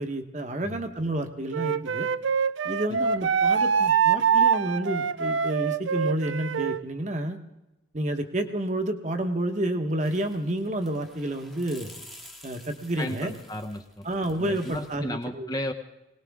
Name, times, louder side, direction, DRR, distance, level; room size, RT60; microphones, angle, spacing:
voice 1, 0.0-2.1 2.6-7.4 7.9-11.9 12.4-13.3 14.0-15.5, right 1 dB, 40° right, 5 dB, 1.2 m, -30 dB
Wind instrument woodwind instrument, 1.5-6.8, right 7 dB, 85° right, 0.5 m, -24 dB
sound 1, 10.0-15.0, left 1 dB, ahead, 1.2 m, -50 dB
voice 2, 13.0-14.1 14.4-15.7, left 1 dB, 20° left, 6 dB, 0.8 m, -34 dB
21.5 x 19.0 x 3.6 m, 0.93 s
head